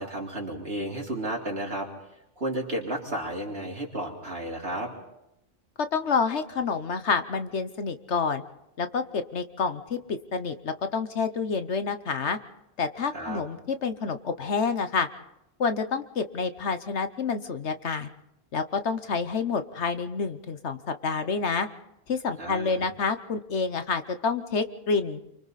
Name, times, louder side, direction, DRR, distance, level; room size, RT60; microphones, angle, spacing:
voice 1, 0.0-1.9 2.4-4.9 13.1-13.4 22.4-22.9, right 1 dB, 50° right, -1 dB, 4.0 m, -32 dB
voice 2, 5.9-8.4 8.8-12.4 12.8-15.1 15.6-18.1 18.5-21.7 22.1-25.2, left 5 dB, 65° left, 9 dB, 1.3 m, -28 dB
28.0 x 24.5 x 4.2 m, 0.85 s
omnidirectional pair, 1.3 m